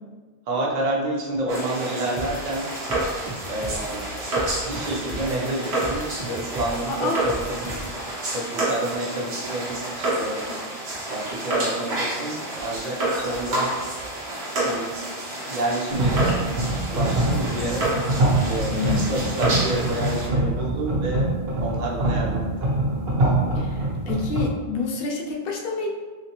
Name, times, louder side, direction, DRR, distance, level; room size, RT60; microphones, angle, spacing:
voice 1, 0.5-2.7 3.5-4.1 4.6-7.8 8.3-10.5 11.1-13.8 14.6-15.0 15.5-16.4 16.9-18.0 18.4-21.3 21.6-22.7, right 2 dB, 50° right, -3 dB, 0.6 m, -29 dB
sound 1, 1.5-20.3, right 1 dB, 90° right, 1.2 m, -29 dB
sound 2, 2.2-8.0, equal, 5° right, 0.4 m, -36 dB
sound 3, 15.9-24.5, right 2 dB, 70° right, 1.0 m, -24 dB
voice 2, 18.7-19.2 23.6-25.9, left 4 dB, 65° left, 0 dB, 0.8 m, -28 dB
3.1 x 2.8 x 2.9 m, 1.4 s
omnidirectional pair, 1.1 m